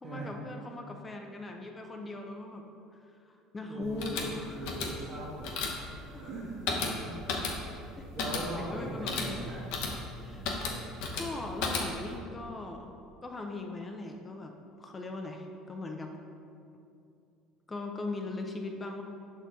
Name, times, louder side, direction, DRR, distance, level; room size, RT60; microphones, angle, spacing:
voice 1, 0.0-2.7 3.0-4.7 6.1-6.2 8.0-8.1 8.6-9.6 10.2-10.5 11.1-13.0 13.2-16.2 17.7-19.0, left 2 dB, 25° left, 3 dB, 0.5 m, -40 dB
voice 2, 3.7-4.2 4.5-5.6 6.0-7.9 8.1-9.6 10.3-10.8, right 2 dB, 45° right, -9 dB, 1.3 m, -41 dB
sound 1, 3.8-12.2, left 4 dB, 75° left, 0.9 m, -35 dB
5.9 x 4.3 x 4.0 m, 2.6 s
hypercardioid pair, 80°, 0 cm